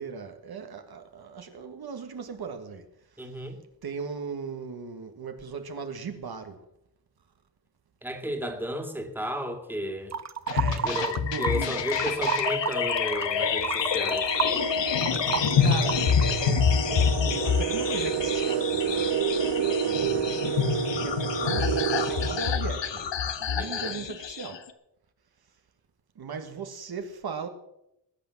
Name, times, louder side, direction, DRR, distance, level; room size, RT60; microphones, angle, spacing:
voice 1, 0.0-2.9 3.2-3.3 3.8-6.6 10.5-11.0 11.2-11.8 15.6-19.2 19.6-24.6 26.2-27.5, right 5 dB, 60° right, 1.6 m, -38 dB
voice 2, 3.2-3.6 8.0-10.2 10.8-14.4 23.6-24.0, equal, 5° right, 2.4 m, -33 dB
sound 1, 10.1-11.6 11.9-16.3, right 7 dB, 40° right, 0.9 m, -31 dB
sound 2, 10.5-24.6, left 7 dB, 85° left, 1.4 m, -27 dB
sound 3, 11.8-12.1 12.9-13.0 13.5-23.2, right 7 dB, 85° right, 1.4 m, -30 dB
20.5 x 8.6 x 7.2 m
wide cardioid pair, 125°, 43 cm